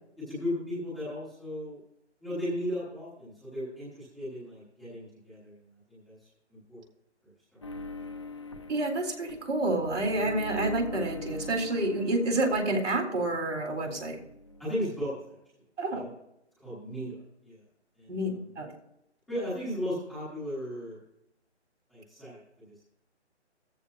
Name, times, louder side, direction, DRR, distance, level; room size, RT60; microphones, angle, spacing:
voice 1, 0.2-1.8 2.2-5.5 5.9-6.8 7.2-7.6 14.6-15.4 15.9-16.0 16.6-17.6 17.9-18.5 19.3-21.0 21.9-22.4 22.7-22.8, equal, ahead, -13 dB, 1.1 m, -36 dB
sound 1, 7.6-13.3 13.6-14.8, left 1 dB, 25° left, 0.9 m, -42 dB
voice 2, 8.7-14.2 15.8-16.1 18.1-18.7, right 2 dB, 85° right, 1 dB, 4.0 m, -29 dB
15.5 x 13.5 x 2.6 m, 0.82 s
hypercardioid pair, 175°, 35 cm